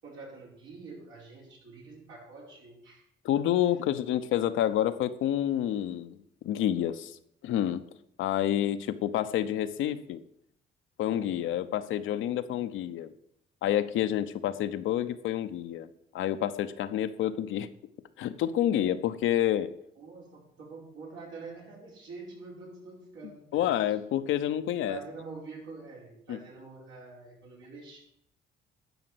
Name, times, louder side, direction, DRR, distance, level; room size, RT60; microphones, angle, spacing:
voice 1, 0.0-3.0 20.0-23.7 24.9-28.0, right 3 dB, 85° right, -4 dB, 5.3 m, -46 dB
voice 2, 3.2-7.2 7.4-7.9 8.2-10.2 11.0-13.1 13.6-15.9 16.1-17.7 18.2-19.7 23.5-25.0 26.3-26.4, left 11 dB, 85° left, 11 dB, 0.7 m, -28 dB
12.0 x 5.1 x 7.8 m, 0.72 s
cardioid pair, 90°, 20 cm